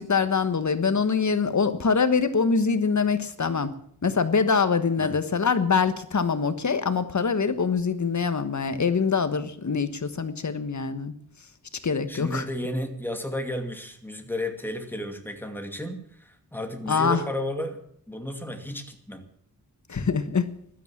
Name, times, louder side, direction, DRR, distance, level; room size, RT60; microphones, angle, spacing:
voice 1, 0.0-3.7 4.0-11.1 11.8-12.4 16.9-17.2 19.9-20.5, left 5 dB, 50° left, 11 dB, 1.4 m, -24 dB
voice 2, 12.1-17.8 18.1-19.2, left 1 dB, 5° left, 5 dB, 2.4 m, -33 dB
15.5 x 12.0 x 7.4 m, 0.65 s
wide cardioid pair, 105°, 38 cm